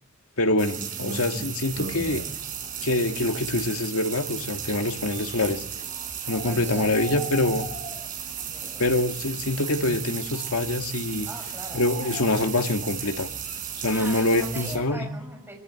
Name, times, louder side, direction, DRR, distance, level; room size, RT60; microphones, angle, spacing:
voice 1, 0.4-2.2 2.8-5.6 6.3-7.7 8.8-11.3 11.7-13.3 13.8-15.1, left 2 dB, 85° left, 5 dB, 1.9 m, -25 dB
sound 1, 0.6-14.8, right 8 dB, 40° right, 4.1 m, -35 dB
sound 2, 1.7-3.8 4.1-14.8, left 2 dB, 70° left, 3.0 m, -48 dB
sound 3, 6.3-6.6 6.9-8.3 8.8-8.9 9.5-10.1 11.3-12.7 13.4-13.6, equal, 30° left, 4.5 m, -40 dB
voice 2, 6.4-6.9 8.5-8.8 11.2-11.9 13.8-15.6, right 1 dB, 10° right, 1 dB, 6.5 m, -40 dB
23.0 x 17.5 x 9.5 m, 0.80 s
head